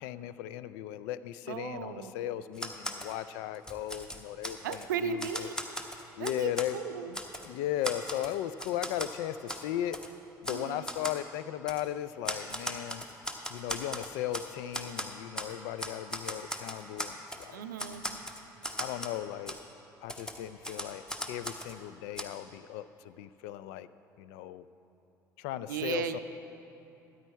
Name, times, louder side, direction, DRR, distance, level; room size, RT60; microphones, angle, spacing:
voice 1, 0.0-5.5 6.2-6.8 7.4-10.0 10.4-13.0 13.5-17.6 18.8-19.6 20.0-23.9 24.2-24.7 25.4-26.2, left 12 dB, 60° left, 15 dB, 0.4 m, -36 dB
voice 2, 1.5-2.1 4.6-5.5 6.2-7.1 10.5-10.9 17.5-18.1 25.7-26.2, right 8 dB, 70° right, 10 dB, 0.5 m, -36 dB
Typewriter, 2.5-3.1 3.5-4.9 5.2-6.7 7.1-7.5 7.8-9.1 9.5-9.6 9.9-10.1 10.4-10.6 10.9-11.2 11.7-11.8 12.2-14.5 14.7-15.5 15.8-17.5 17.8-19.2 19.5-19.6 20.1-21.7 22.2-22.3, equal, 5° left, 1.0 m, -38 dB
13.0 x 9.7 x 4.4 m, 2.9 s
figure-of-eight pair, 55°, 10 cm